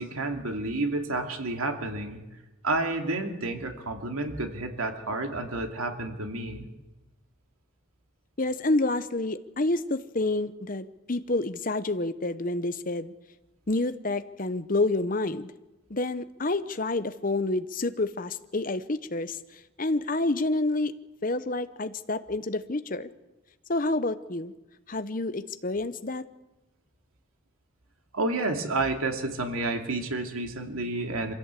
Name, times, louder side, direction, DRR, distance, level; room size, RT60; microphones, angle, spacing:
voice 1, 0.0-2.2 2.6-6.7 28.1-31.3, right 2 dB, 90° right, 4 dB, 2.7 m, -30 dB
voice 2, 8.4-13.1 13.7-15.5 15.9-21.0 21.2-23.1 23.7-24.5 24.9-26.3, left 2 dB, 40° left, 12 dB, 0.9 m, -28 dB
25.0 x 16.0 x 8.4 m, 1.1 s
head